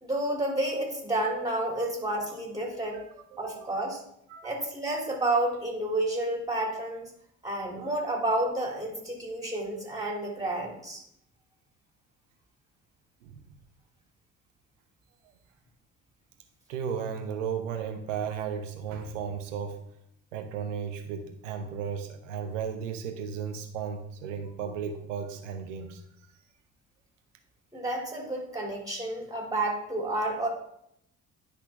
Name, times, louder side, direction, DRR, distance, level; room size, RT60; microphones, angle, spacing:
voice 1, 0.0-3.0 3.4-4.0 4.4-7.1 7.4-11.0 27.7-30.5, right 1 dB, 10° right, 0 dB, 3.0 m, -30 dB
voice 2, 2.9-3.7 4.3-4.5 13.2-13.4 16.7-19.8 20.3-26.0, right 7 dB, 75° right, 7 dB, 1.0 m, -35 dB
10.0 x 5.8 x 3.6 m, 0.73 s
figure-of-eight pair, 40°, 37 cm